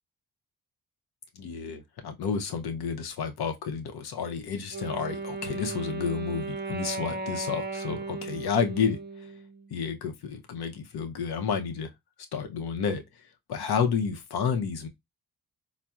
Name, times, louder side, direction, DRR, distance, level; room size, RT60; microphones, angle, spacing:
voice 1, 1.3-9.3 9.7-11.9 12.3-14.9, left 6 dB, 70° left, 0.7 m, -31 dB
Wind instrument woodwind instrument, 4.7-9.8, right 3 dB, 25° right, 0.5 m, -36 dB
4.1 x 2.0 x 2.3 m
cardioid pair, 60°, 40 cm